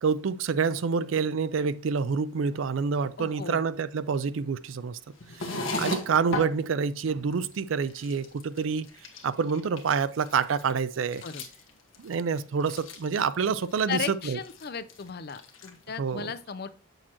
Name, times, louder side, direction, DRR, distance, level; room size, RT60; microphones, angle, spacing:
voice 1, 0.0-5.0 5.4-8.9 9.2-11.2 12.0-14.4 16.0-16.3, right 5 dB, 80° right, 0.4 m, -27 dB
voice 2, 3.2-3.6 11.2-11.4 13.9-16.7, left 6 dB, 50° left, 0.5 m, -35 dB
sound 1, 5.2-6.5 7.1-7.2 7.3-7.6 7.8-8.6 8.8-9.9 10.2-13.3 13.6-14.1 14.4-15.0 15.3-15.7, left 2 dB, 80° left, 1.2 m, -36 dB
7.5 x 6.5 x 2.9 m
head